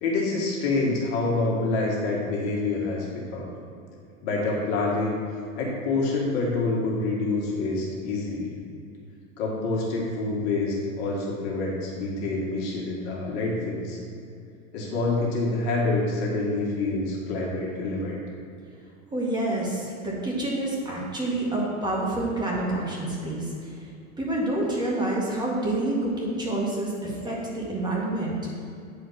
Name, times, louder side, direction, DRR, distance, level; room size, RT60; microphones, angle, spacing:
voice 1, 0.0-3.5 4.2-5.1 5.6-8.5 9.4-14.0 14.7-18.2, left 3 dB, 50° left, -3 dB, 1.9 m, -27 dB
voice 2, 19.1-23.9 24.2-28.4, right 1 dB, 10° right, -5 dB, 2.0 m, -28 dB
9.4 x 4.9 x 4.3 m, 2.5 s
hypercardioid pair, 120°, 41 cm